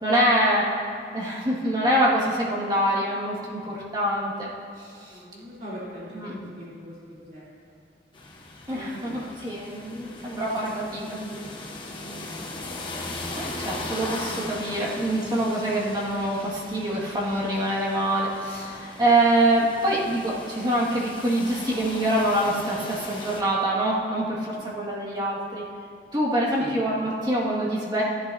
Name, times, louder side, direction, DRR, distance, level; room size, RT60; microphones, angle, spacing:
voice 1, 0.0-0.8 1.1-4.5 4.8-5.1 6.1-6.4 8.7-11.0 13.3-25.7 26.1-28.0, right 1 dB, 25° right, -5 dB, 2.0 m, -25 dB
voice 2, 5.1-7.5 8.7-9.2 10.2-11.4 11.9-12.4 14.9-15.0 24.5-24.6 26.6-26.8, equal, 45° right, -9 dB, 3.4 m, -41 dB
sound 1, 8.1-23.4, left 2 dB, 30° left, 1.1 m, -39 dB
16.0 x 11.0 x 2.8 m, 2.2 s
head